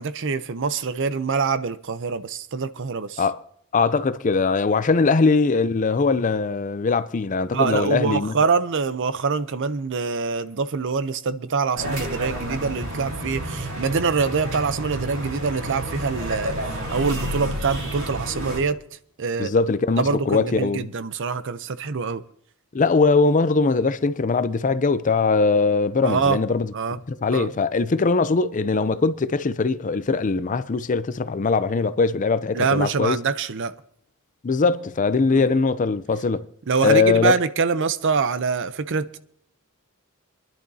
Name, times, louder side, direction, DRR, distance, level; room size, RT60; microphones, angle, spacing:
voice 1, 0.0-3.2 7.5-16.6 16.9-18.8 19.2-19.5 20.0-22.2 26.0-26.4 26.7-27.0 27.3-27.5 32.5-33.7 35.3-35.5 36.7-39.2, right 5 dB, 60° right, 0.6 m, -24 dB
voice 2, 3.7-8.3 19.4-20.9 22.7-26.7 27.1-33.2 34.4-36.5 36.8-37.3, left 4 dB, 35° left, 0.5 m, -21 dB
sound 1, 11.8-18.6, right 1 dB, 80° right, 5.0 m, -30 dB
26.0 x 11.0 x 2.7 m
head